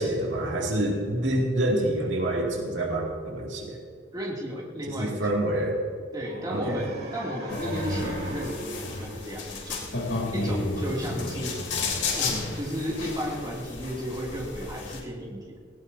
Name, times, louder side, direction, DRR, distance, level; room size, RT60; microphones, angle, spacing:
voice 1, 0.0-3.8 5.0-5.8 6.5-6.9, right 1 dB, 75° right, -1 dB, 2.4 m, -27 dB
voice 2, 4.1-5.3 6.1-9.8 10.3-11.6 12.1-15.6, equal, 20° right, -3 dB, 2.6 m, -34 dB
sound 1, 6.2-10.3, right 1 dB, 55° right, 2.8 m, -38 dB
sound 2, 7.5-15.0, left 3 dB, 75° left, 3.2 m, -32 dB
18.5 x 16.0 x 2.7 m, 2.2 s
head